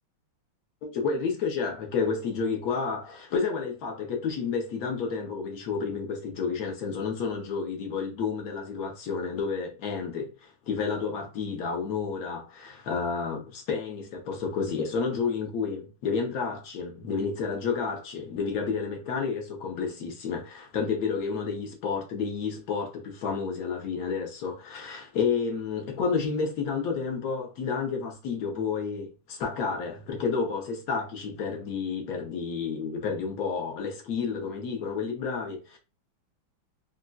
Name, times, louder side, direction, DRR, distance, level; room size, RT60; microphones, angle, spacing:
voice 1, 0.8-35.8, left 5 dB, 60° left, 1.0 m, -30 dB
3.9 x 2.1 x 2.3 m
omnidirectional pair, 2.2 m